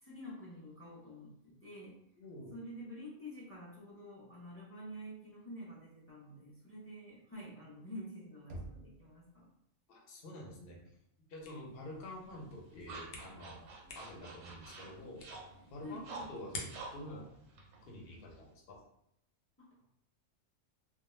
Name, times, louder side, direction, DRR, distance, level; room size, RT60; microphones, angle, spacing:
voice 1, 0.0-2.0 2.5-9.5 15.8-16.1 19.6-19.9, equal, 15° left, -7 dB, 0.5 m, -48 dB
voice 2, 2.2-2.6 9.9-10.8 11.3-13.7 13.9-15.3 15.7-17.5 17.9-18.8, left 1 dB, 55° left, -2 dB, 0.8 m, -48 dB
Knock, 8.5-9.4, right 1 dB, 60° right, 0.6 m, -48 dB
Pressing Buttons on a Plastic Music Player, 11.4-17.1, left 2 dB, 80° left, 1.0 m, -51 dB
sound 1, 12.0-18.5, right 3 dB, 90° right, 1.0 m, -50 dB
2.3 x 2.1 x 3.0 m, 0.75 s
omnidirectional pair, 1.3 m